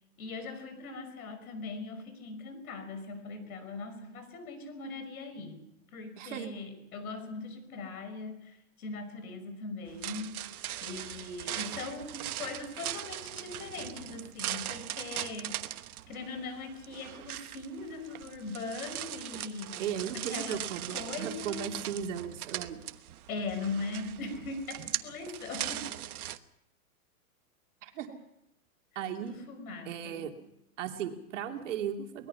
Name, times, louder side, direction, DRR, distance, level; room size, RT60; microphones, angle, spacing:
voice 1, 0.2-5.6 5.9-10.3 10.8-15.8 16.1-20.6 20.9-21.7 23.3-26.0 29.2-30.3, left 3 dB, 75° left, 9 dB, 5.7 m, -40 dB
voice 2, 6.2-6.5 19.3-19.4 19.8-22.8 27.8-28.2 28.9-29.4 29.9-30.3 30.8-32.3, right 9 dB, 55° right, 3 dB, 2.7 m, -36 dB
sound 1, 9.9-26.4, right 12 dB, 80° right, 1.2 m, -40 dB
23.0 x 20.5 x 5.8 m, 0.82 s
supercardioid pair, 175°, 43 cm